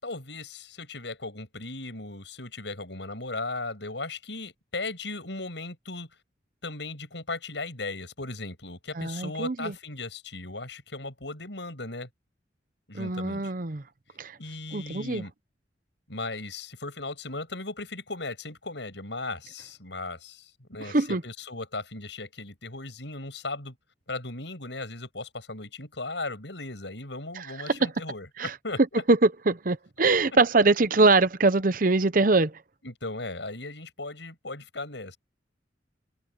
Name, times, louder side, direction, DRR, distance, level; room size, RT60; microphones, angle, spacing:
voice 1, 0.0-6.1 6.6-12.1 12.9-13.5 14.4-15.3 16.1-23.7 24.1-29.0 32.8-35.2, left 2 dB, 75° left, 6.8 m, -37 dB
voice 2, 9.0-9.7 12.9-13.8 14.2-14.4 14.7-15.2 20.8-21.2 27.4-27.8 28.4-28.5 29.1-32.6, right 3 dB, 50° right, 0.9 m, -23 dB
head